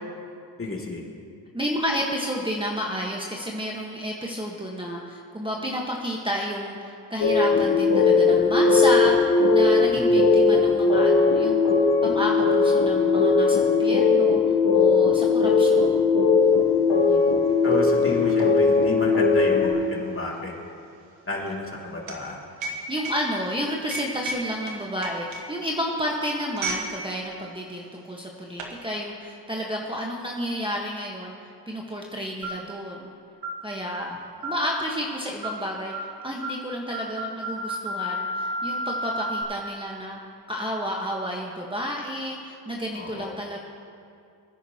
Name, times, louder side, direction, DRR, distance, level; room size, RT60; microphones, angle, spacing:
voice 1, 0.6-1.0 9.9-10.3 17.6-20.5 21.3-22.4 42.9-43.4, left 2 dB, 30° left, -2 dB, 2.6 m, -31 dB
voice 2, 1.5-9.1 9.5-11.6 12.0-14.4 14.7-16.0 17.0-17.4 22.9-33.1 33.6-40.2 40.5-43.6, equal, 10° right, -2 dB, 1.3 m, -31 dB
sound 1, 7.2-19.7, left 4 dB, 65° left, 2.3 m, -19 dB
sound 2, 16.6-16.7 17.0-26.9 27.2-27.5 28.1-28.8, right 2 dB, 85° right, 1.6 m, -36 dB
sound 3, 32.4-32.7 33.4-33.6 34.4-34.7 35.4-35.6 35.9-36.1 36.4-36.6 36.9-39.4, equal, 55° right, 2.4 m, -31 dB
21.5 x 10.0 x 2.9 m, 2.4 s
cardioid pair, 65°, 46 cm